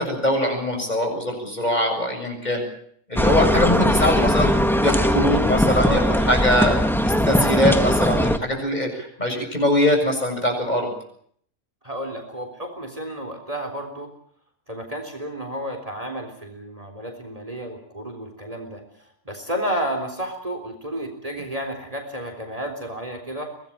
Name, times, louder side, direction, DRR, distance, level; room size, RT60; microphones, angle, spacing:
voice 1, 0.0-2.6 3.1-4.5 4.8-6.0 6.3-10.9, left 1 dB, 30° left, 3 dB, 7.6 m, -22 dB
sound 1, 3.2-8.4, equal, ahead, 1.5 m, -20 dB
voice 2, 5.7-6.2 11.8-14.1 14.7-18.8 19.3-23.5, right 1 dB, 25° right, 5 dB, 3.9 m, -31 dB
24.0 x 19.0 x 8.7 m, 0.64 s
omnidirectional pair, 1.4 m